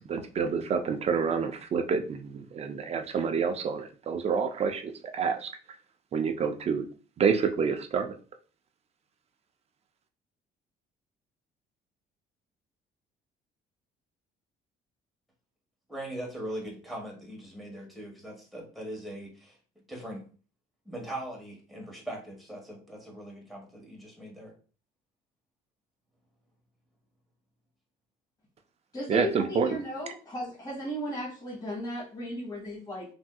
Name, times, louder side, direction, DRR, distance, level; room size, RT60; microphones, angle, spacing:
voice 1, 0.0-5.5 6.1-6.9 7.2-8.1 29.1-29.8, right 6 dB, 40° right, 7 dB, 0.4 m, -28 dB
voice 2, 15.9-19.6 19.9-20.2 20.8-24.5, right 1 dB, ahead, -2 dB, 1.2 m, -40 dB
voice 3, 28.9-33.1, left 1 dB, 25° left, -6 dB, 1.3 m, -36 dB
3.4 x 2.6 x 2.2 m, 0.39 s
cardioid pair, 110°, 17 cm